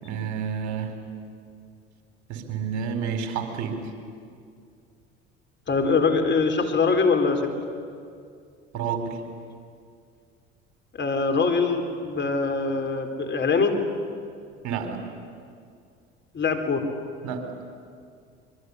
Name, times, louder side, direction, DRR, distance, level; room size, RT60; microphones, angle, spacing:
voice 1, 0.0-0.9 2.3-3.8 8.7-9.2 14.6-15.0 17.2-17.4, right 7 dB, 65° right, 6 dB, 4.3 m, -29 dB
voice 2, 5.7-7.4 11.0-13.8 16.3-16.9, left 4 dB, 35° left, 5 dB, 4.2 m, -23 dB
24.5 x 23.5 x 9.8 m, 2.3 s
hypercardioid pair, 70°, 31 cm